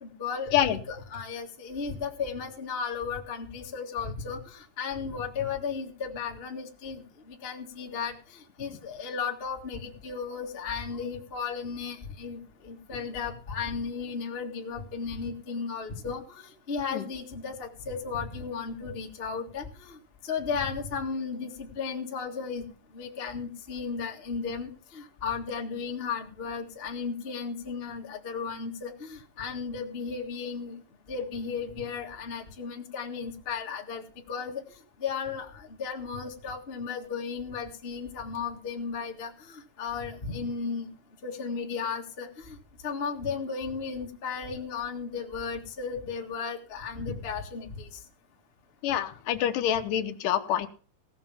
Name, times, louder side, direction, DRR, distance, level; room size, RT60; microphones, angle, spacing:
voice 1, 0.0-8.2 8.6-20.0 20.2-22.6 22.9-30.7 31.1-34.0 34.3-34.6 35.0-40.9 41.2-42.5 42.8-47.9, left 5 dB, 35° left, 1 dB, 0.9 m, -35 dB
voice 2, 48.8-50.7, left 10 dB, 75° left, 8 dB, 2.4 m, -26 dB
16.5 x 6.2 x 7.2 m, 0.40 s
omnidirectional pair, 4.0 m